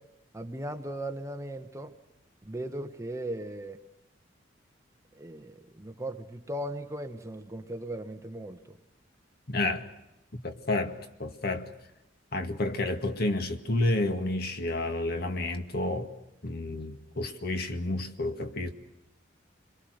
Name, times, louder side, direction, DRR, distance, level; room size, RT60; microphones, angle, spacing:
voice 1, 0.3-1.9 2.4-3.8 5.1-8.8, right 1 dB, 15° right, 1.3 m, -37 dB
voice 2, 9.5-9.9 10.3-11.7 12.3-16.1 16.4-18.7, left 2 dB, 55° left, 2.1 m, -30 dB
28.5 x 23.0 x 6.5 m
head